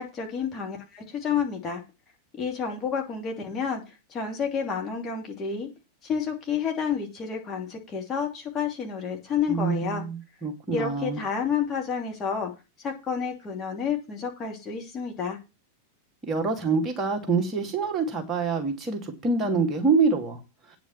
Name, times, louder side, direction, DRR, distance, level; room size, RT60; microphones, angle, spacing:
voice 1, 0.0-1.8 2.3-3.8 4.1-5.7 6.0-10.0 10.7-12.5 12.8-15.4, left 6 dB, 25° left, 1 dB, 2.9 m, -30 dB
voice 2, 9.5-11.2 16.3-20.4, right 4 dB, 20° right, 3 dB, 2.7 m, -26 dB
9.4 x 6.0 x 7.4 m, 0.28 s
figure-of-eight pair, 90°, 0 cm